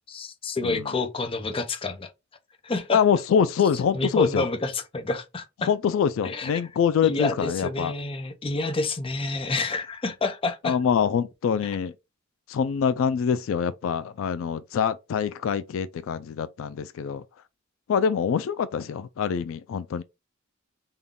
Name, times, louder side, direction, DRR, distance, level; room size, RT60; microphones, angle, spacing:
voice 1, 0.1-2.1 2.6-3.0 3.9-5.7 6.2-6.5 7.0-10.8, left 3 dB, 30° left, 0.6 m, -28 dB
voice 2, 2.9-4.5 5.6-7.9 10.6-11.9 12.5-17.2 17.9-20.0, left 7 dB, 80° left, 0.3 m, -25 dB
3.7 x 2.3 x 3.5 m
head